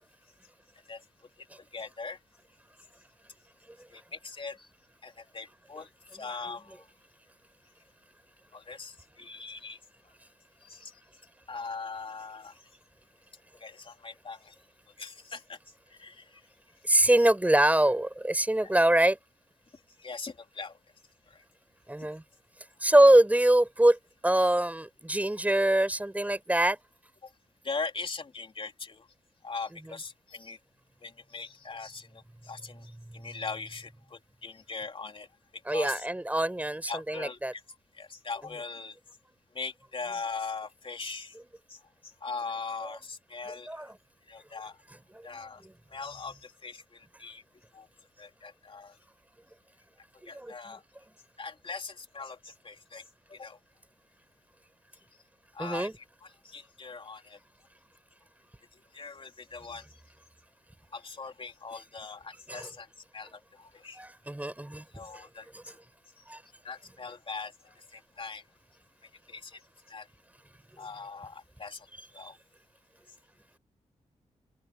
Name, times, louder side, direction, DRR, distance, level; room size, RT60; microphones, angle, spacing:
voice 1, 1.7-2.2 3.9-4.7 5.0-6.8 8.5-9.8 10.6-10.9 11.5-12.6 13.6-14.5 15.0-15.6 15.9-16.4 18.6-18.7 20.0-20.8 21.3-21.4 22.0-22.1 27.2-27.3 27.6-29.1 29.4-30.6 31.0-35.3 35.7-36.1 36.9-37.6 38.0-39.0 39.5-41.3 41.7-43.9 44.3-44.8 45.2-45.6 45.9-47.4 47.7-47.9 48.2-48.9 50.3-50.8 51.4-53.0 53.3-53.6 55.5-57.4 58.9-60.0 60.9-62.9 63.1-64.0 64.9-65.8 66.2-66.3 66.6-68.4 69.3-69.6 69.9-70.1 70.8-71.9 72.1-72.4, left 4 dB, 45° left, 3.2 m, -41 dB
voice 2, 16.8-19.2 21.9-22.2 22.8-26.8 35.7-37.5 43.7-43.9 45.1-45.5 50.2-50.7 55.6-55.9 62.5-62.7 63.9-64.8 65.1-65.3 65.5-65.6 66.3-66.4 72.2-72.3, right 1 dB, 10° right, 4.8 m, -24 dB
open air
cardioid pair, 80°, 12 cm